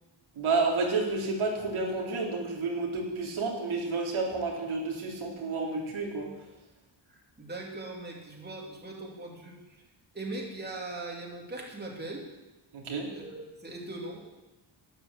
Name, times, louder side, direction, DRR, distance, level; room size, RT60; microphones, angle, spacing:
voice 1, 0.4-6.3 12.7-13.1, right 3 dB, 90° right, -2 dB, 3.6 m, -30 dB
voice 2, 7.1-9.8 10.1-12.3 13.1-14.4, right 2 dB, 20° right, -1 dB, 2.9 m, -40 dB
12.5 x 10.5 x 8.1 m, 1.1 s
wide cardioid pair, 140°, 48 cm